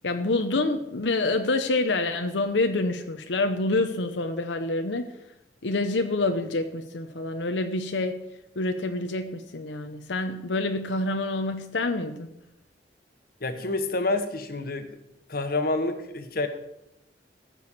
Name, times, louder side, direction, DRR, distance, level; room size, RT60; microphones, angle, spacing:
voice 1, 0.0-5.1 5.6-8.2 8.6-12.3, left 2 dB, 85° left, 7 dB, 0.8 m, -27 dB
voice 2, 13.4-14.9 15.3-16.5, left 2 dB, 55° left, 8 dB, 1.3 m, -28 dB
15.0 x 6.3 x 7.2 m, 0.86 s
head